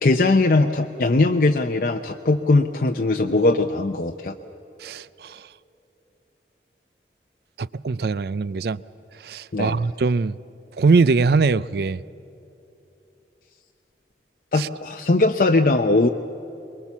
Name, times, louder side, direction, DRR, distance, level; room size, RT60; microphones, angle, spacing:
voice 1, 0.0-4.4 9.5-9.8 14.5-16.1, left 2 dB, 50° left, 0.6 m, -20 dB
voice 2, 4.8-5.4 7.6-8.8 9.2-10.4 10.8-12.0 14.6-14.7, right 4 dB, 60° right, 0.4 m, -21 dB
23.5 x 22.0 x 7.2 m
head